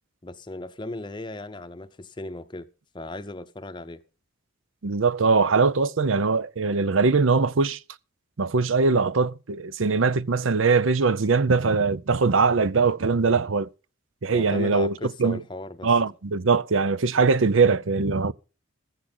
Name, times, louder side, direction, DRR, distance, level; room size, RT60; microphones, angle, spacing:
voice 1, 0.2-2.7 2.9-4.0 14.3-15.9, left 2 dB, 25° left, 0.7 m, -37 dB
voice 2, 4.8-7.8 8.4-13.7 14.2-15.4 15.8-18.3, right 4 dB, 80° right, 0.7 m, -21 dB
14.5 x 13.5 x 4.0 m
head